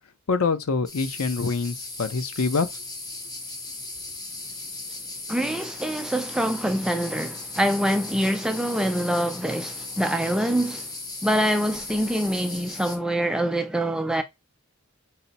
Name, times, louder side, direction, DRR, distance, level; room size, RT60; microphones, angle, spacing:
voice 1, 0.3-2.7, left 4 dB, 80° left, 0.6 m, -25 dB
sound 1, 0.9-13.0, left 2 dB, 15° left, 0.8 m, -37 dB
voice 2, 5.3-10.9 11.2-14.2, equal, 5° right, 0.3 m, -25 dB
5.6 x 2.0 x 4.0 m
head